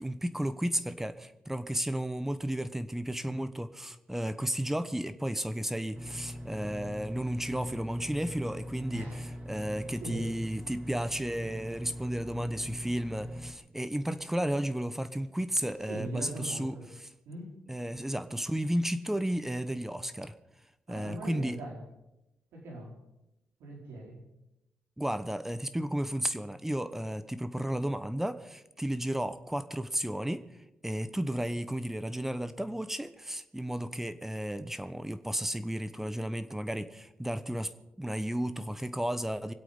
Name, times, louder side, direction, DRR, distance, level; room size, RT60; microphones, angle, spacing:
voice 1, 0.0-9.1 9.5-16.8 17.7-20.3 20.9-21.6 25.0-30.4 30.8-37.7 38.0-39.5, right 1 dB, 10° right, 12 dB, 1.0 m, -33 dB
sound 1, 5.9-13.5, equal, 35° right, 2.4 m, -42 dB
voice 2, 8.9-9.7 10.0-10.3 15.9-16.9 17.3-17.6 20.9-21.8 22.5-23.0 23.6-24.3, right 2 dB, 90° right, -1 dB, 4.2 m, -41 dB
24.0 x 8.4 x 5.4 m, 0.92 s
supercardioid pair, 60°, 4 cm